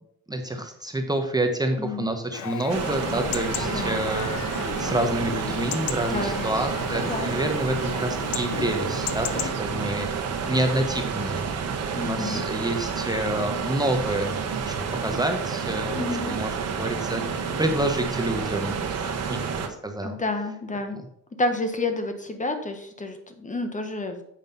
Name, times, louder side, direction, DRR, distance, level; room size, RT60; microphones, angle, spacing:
voice 1, 0.3-4.3 4.8-10.1 10.5-11.5 12.0-14.4 14.7-19.4 19.8-20.2 20.9-21.0, right 1 dB, 15° right, 5 dB, 1.0 m, -28 dB
voice 2, 1.8-2.1 3.6-4.0 6.1-6.4 6.9-7.5 12.0-12.4 15.9-16.4 20.0-21.0 21.4-24.2, left 2 dB, 25° left, 7 dB, 1.3 m, -30 dB
Chatter / Livestock farm animals working animals / Chirp tweet, 2.3-9.5, left 10 dB, 70° left, 0.8 m, -35 dB
sound 1, 2.7-19.7, right 6 dB, 55° right, 1.3 m, -29 dB
7.7 x 5.2 x 5.6 m, 0.72 s
cardioid pair, 90°, 30 cm